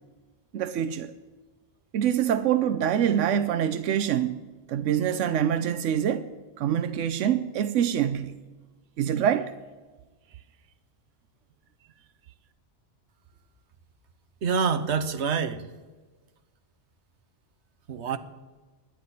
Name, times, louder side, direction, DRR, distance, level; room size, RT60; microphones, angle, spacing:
voice 1, 0.5-1.1 1.9-4.4 4.7-6.3 6.6-8.3 9.0-9.5, right 9 dB, 90° right, 1.0 m, -25 dB
voice 2, 14.4-15.6 17.9-18.2, right 6 dB, 70° right, 1.2 m, -26 dB
24.0 x 10.0 x 4.2 m
omnidirectional pair, 1.2 m